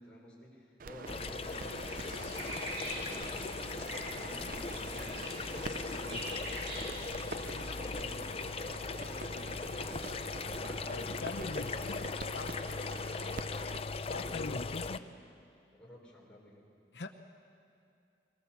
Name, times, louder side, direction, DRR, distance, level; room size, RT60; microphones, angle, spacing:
voice 1, 0.0-11.8 14.0-15.1 15.7-16.7, left 1 dB, 5° left, -4 dB, 4.2 m, -54 dB
sound 1, 0.8-13.8, right 4 dB, 50° right, 0.5 m, -46 dB
sound 2, 1.1-15.0, left 4 dB, 35° left, 0.5 m, -39 dB
sound 3, 1.5-7.9, equal, 90° right, 7.7 m, -44 dB
voice 2, 10.9-12.5 14.1-15.0 16.9-17.1, left 3 dB, 75° left, 7 dB, 0.8 m, -41 dB
22.5 x 19.0 x 7.2 m, 2.4 s
head